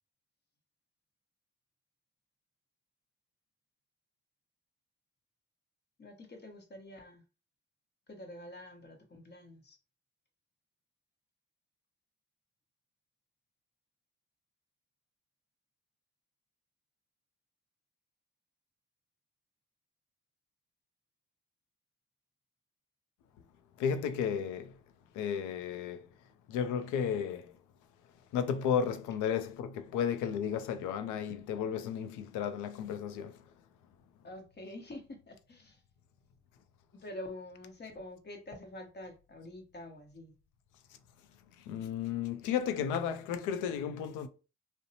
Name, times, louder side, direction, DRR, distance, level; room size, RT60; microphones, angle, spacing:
voice 1, 6.0-7.2 8.1-9.8 34.2-35.8 37.0-40.3, left 1 dB, 35° left, 1.0 m, -47 dB
voice 2, 23.8-24.7 25.2-26.1 26.5-27.5 28.3-33.3 41.7-44.3, left 8 dB, 85° left, 0.5 m, -33 dB
2.6 x 2.1 x 2.7 m
supercardioid pair, 65°, 30 cm